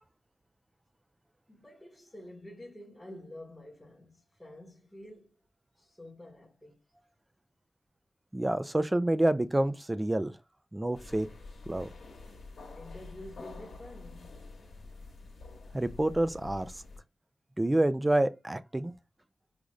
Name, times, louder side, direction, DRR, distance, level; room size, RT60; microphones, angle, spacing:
voice 1, 1.5-5.4 5.8-6.8 12.7-14.4, left 1 dB, ahead, 1.0 m, -49 dB
voice 2, 8.3-10.3 10.7-11.3 11.7-11.9 15.7-16.7 17.6-18.9, right 1 dB, 15° right, 0.3 m, -28 dB
sound 1, 10.9-17.0, left 3 dB, 75° left, 1.1 m, -47 dB
5.0 x 2.4 x 3.1 m
wide cardioid pair, 120°, 0 cm